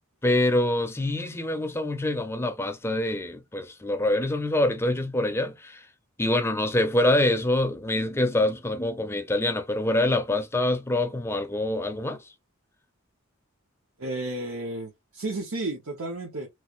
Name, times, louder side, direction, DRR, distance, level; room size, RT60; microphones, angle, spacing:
voice 1, 0.2-5.8 6.2-12.2, left 1 dB, 10° left, 0.4 m, -25 dB
voice 2, 14.0-16.5, right 2 dB, 80° right, 0.9 m, -32 dB
3.2 x 2.4 x 3.0 m
head